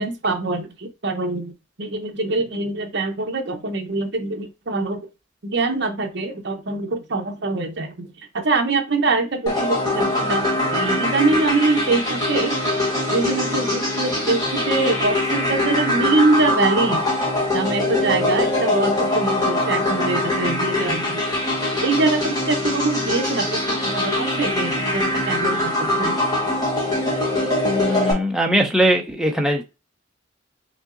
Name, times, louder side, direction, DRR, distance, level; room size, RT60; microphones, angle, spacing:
voice 1, 0.0-1.5 1.8-5.1 5.4-8.1 8.4-12.6 13.1-17.0 17.5-21.2 21.8-26.2, right 3 dB, 55° right, 3 dB, 0.7 m, -23 dB
sound 1, 9.5-28.1, left 1 dB, 20° left, 1.1 m, -23 dB
voice 2, 27.6-29.6, equal, 5° right, 2 dB, 0.5 m, -20 dB
5.1 x 2.8 x 2.5 m, 0.28 s
head